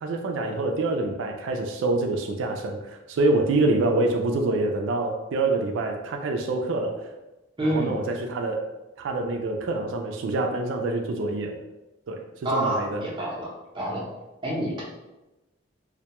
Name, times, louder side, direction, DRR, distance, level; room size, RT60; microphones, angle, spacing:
voice 1, 0.0-6.9 7.6-8.6 9.0-11.5 12.1-12.2 12.5-13.1, right 2 dB, 90° right, 3 dB, 0.3 m, -26 dB
voice 2, 7.6-7.9 12.4-13.5 13.7-14.0 14.4-14.8, right 1 dB, 25° right, -5 dB, 0.6 m, -27 dB
2.2 x 2.1 x 2.8 m, 1.0 s
head